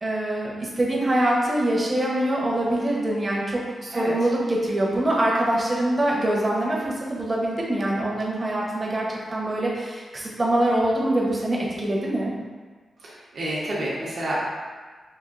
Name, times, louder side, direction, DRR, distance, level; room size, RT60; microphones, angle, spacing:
voice 1, 0.0-12.3, right 1 dB, 30° right, -3 dB, 0.8 m, -24 dB
voice 2, 13.0-14.4, right 1 dB, 65° right, -8 dB, 0.9 m, -29 dB
5.0 x 2.5 x 2.5 m, 1.4 s
cardioid pair, 90°, 0 cm